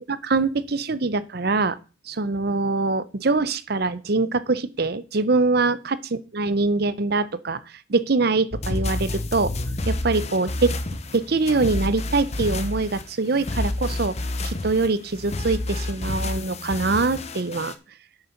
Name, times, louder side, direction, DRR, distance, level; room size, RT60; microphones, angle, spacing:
voice 1, 0.2-1.8 2.1-6.0 6.3-7.6 7.9-9.5 9.9-10.8 11.1-14.1 14.4-17.7, right 3 dB, 50° right, 15 dB, 0.7 m, -23 dB
sound 1, 8.5-17.8, left 2 dB, 35° left, 0.8 m, -29 dB
8.3 x 6.6 x 5.8 m, 0.34 s
head